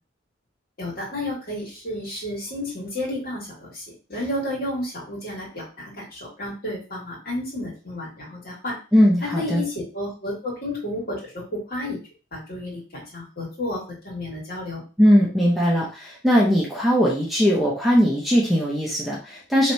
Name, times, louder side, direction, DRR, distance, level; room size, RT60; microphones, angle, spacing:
voice 1, 0.8-3.8 4.1-8.7 9.2-12.0 12.3-14.8, left 1 dB, 50° left, -4 dB, 2.2 m, -31 dB
voice 2, 8.9-9.6 15.0-19.7, equal, ahead, -5 dB, 0.8 m, -19 dB
5.1 x 3.1 x 2.8 m, 0.34 s
head